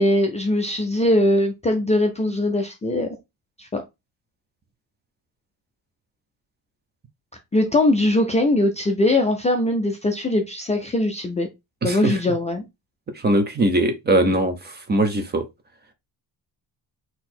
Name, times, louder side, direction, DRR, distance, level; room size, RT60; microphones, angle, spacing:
voice 1, 0.0-3.1 3.6-3.8 7.5-11.5 11.8-12.6, left 1 dB, 15° left, 0.4 m, -21 dB
voice 2, 11.8-12.2 13.1-15.4, right 1 dB, 25° right, 0.6 m, -21 dB
4.0 x 2.9 x 4.2 m
cardioid pair, 170°, 44 cm